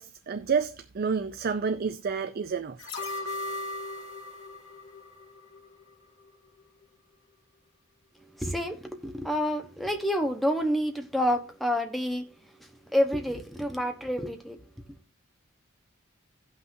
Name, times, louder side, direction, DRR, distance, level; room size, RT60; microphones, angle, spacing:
voice 1, 0.0-2.9, right 5 dB, 45° right, 0.4 m, -29 dB
sound 1, 2.8-5.9 6.3-6.4, left 2 dB, 70° left, 2.2 m, -37 dB
voice 2, 8.2-14.6, equal, ahead, 0.9 m, -29 dB
17.0 x 5.8 x 2.7 m
head